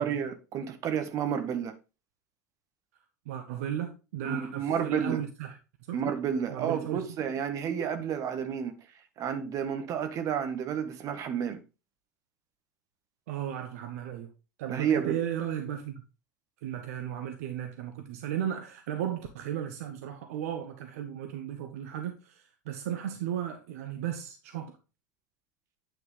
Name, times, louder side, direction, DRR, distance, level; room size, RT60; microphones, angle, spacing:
voice 1, 0.0-1.7 4.2-5.2 5.9-8.7 9.2-11.6 14.7-15.2, right 8 dB, 40° right, 1.5 m, -31 dB
voice 2, 3.3-5.6 5.9-6.0 6.5-7.0 13.3-14.3 14.6-16.0 16.6-24.7, right 10 dB, 60° right, 1.0 m, -35 dB
9.4 x 5.9 x 3.4 m
figure-of-eight pair, 75°, 9 cm